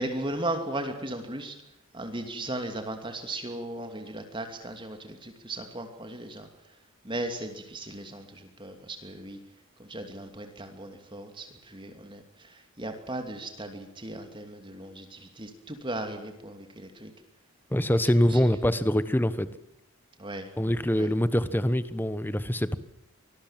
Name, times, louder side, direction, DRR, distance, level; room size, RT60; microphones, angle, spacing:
voice 1, 0.0-1.5 1.9-6.5 7.0-9.4 9.8-12.2 12.8-17.1 18.3-18.4 20.2-20.5 21.0-21.1, right 1 dB, 20° right, 6 dB, 2.8 m, -36 dB
voice 2, 17.7-19.5 20.6-22.8, equal, 10° left, 14 dB, 1.2 m, -24 dB
25.5 x 21.0 x 7.5 m, 0.81 s
head